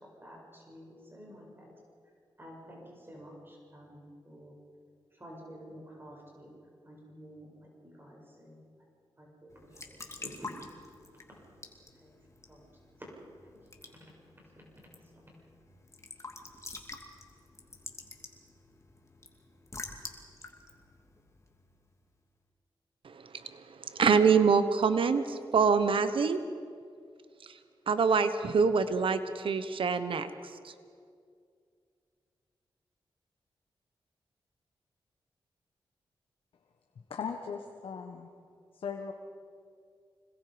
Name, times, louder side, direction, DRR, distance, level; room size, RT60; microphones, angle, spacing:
voice 1, 0.2-1.7 2.4-4.5 5.1-6.5 6.8-8.6 9.2-10.5 11.1-11.6 11.9-12.2 12.5-12.7 13.0-15.5, equal, 25° right, -2 dB, 7.1 m, -51 dB
Raindrop / Drip / Trickle dribble, 9.5-22.0, left 3 dB, 35° left, 2.7 m, -48 dB
voice 2, 23.0-26.4 27.4-27.5 27.9-30.3 30.6-30.7, right 5 dB, 70° right, 11 dB, 1.1 m, -26 dB
voice 3, 37.1-38.3 38.7-39.1, left 6 dB, 80° left, 3 dB, 1.4 m, -38 dB
26.0 x 21.0 x 5.2 m, 2.2 s
cardioid pair, 65°, 9 cm